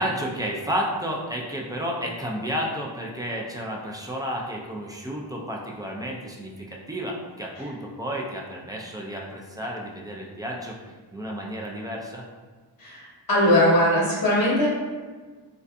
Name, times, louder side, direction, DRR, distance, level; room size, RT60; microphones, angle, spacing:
voice 1, 0.0-12.2, equal, 10° right, -2 dB, 0.3 m, -31 dB
voice 2, 12.8-14.7, left 1 dB, 50° left, -5 dB, 0.8 m, -20 dB
2.6 x 2.4 x 2.2 m, 1.4 s
wide cardioid pair, 40°, 46 cm